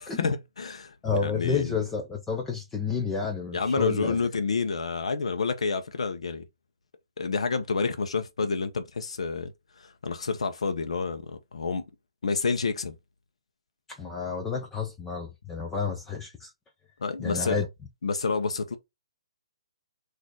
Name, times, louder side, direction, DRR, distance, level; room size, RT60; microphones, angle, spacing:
voice 1, 0.0-0.9 1.2-1.8 3.5-6.4 7.2-9.5 9.8-11.8 12.2-12.9 17.0-17.6 18.0-18.7, left 4 dB, 85° left, 0.7 m, -29 dB
voice 2, 1.0-4.2 13.9-16.5 17.2-17.7, left 5 dB, 10° left, 0.4 m, -30 dB
4.2 x 2.6 x 4.5 m
hypercardioid pair, 170°, 3 cm